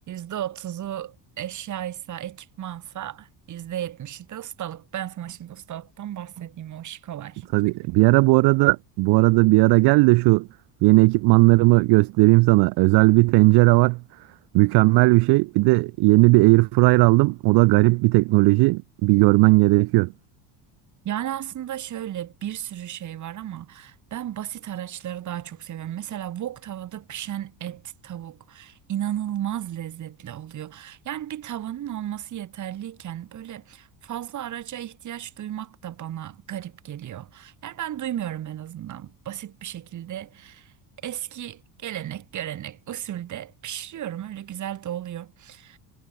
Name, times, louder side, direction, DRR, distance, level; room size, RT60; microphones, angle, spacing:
voice 1, 0.0-7.5 21.0-40.7 41.0-45.8, right 11 dB, 40° right, 3.4 m, -34 dB
voice 2, 7.5-10.5 10.8-14.0 14.5-20.1, right 24 dB, 60° right, 0.6 m, -17 dB
cardioid pair, 150°, 45 cm